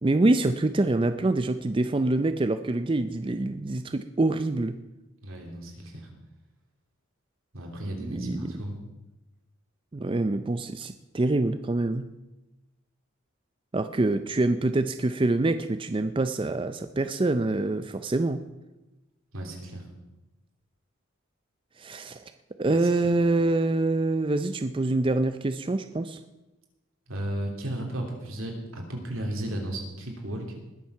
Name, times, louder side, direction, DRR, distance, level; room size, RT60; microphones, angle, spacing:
voice 1, 0.0-4.8 8.0-8.5 9.9-12.1 13.7-18.4 21.8-22.2 22.6-26.2, right 2 dB, 25° right, 10 dB, 0.4 m, -25 dB
voice 2, 5.2-6.1 7.5-8.8 19.3-19.9 22.7-23.1 27.1-30.5, right 1 dB, 80° right, 1 dB, 3.2 m, -34 dB
20.0 x 7.5 x 5.7 m, 1.0 s
head